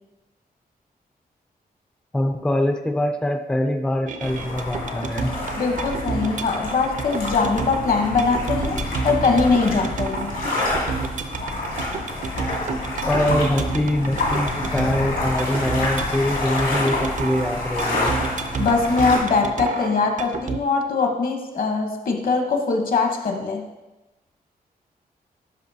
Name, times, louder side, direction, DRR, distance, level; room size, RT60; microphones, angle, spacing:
voice 1, 2.1-5.3 13.0-18.2, left 1 dB, 5° left, 6 dB, 0.3 m, -23 dB
sound 1, 4.1-20.6, right 5 dB, 55° right, 0.5 m, -31 dB
sound 2, 4.2-19.2, left 2 dB, 85° left, 2.3 m, -28 dB
voice 2, 5.6-10.3 18.6-23.7, left 4 dB, 60° left, 4 dB, 0.9 m, -22 dB
11.5 x 5.0 x 2.7 m, 1.1 s
wide cardioid pair, 145°, 16 cm